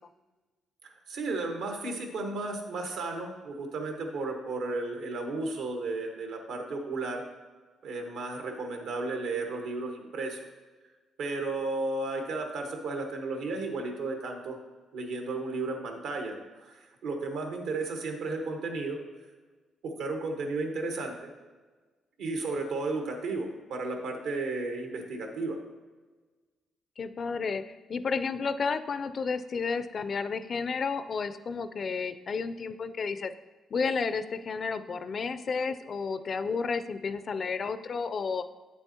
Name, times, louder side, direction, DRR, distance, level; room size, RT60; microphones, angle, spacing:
voice 1, 0.8-7.2 7.8-10.4 11.2-14.6 14.9-19.0 19.8-21.2 22.2-25.6, right 3 dB, 85° right, 3 dB, 1.2 m, -33 dB
voice 2, 27.0-27.6 27.9-33.3 33.7-38.4, left 5 dB, 45° left, 12 dB, 0.4 m, -31 dB
8.4 x 7.0 x 2.8 m, 1.3 s
cardioid pair, 90°, 0 cm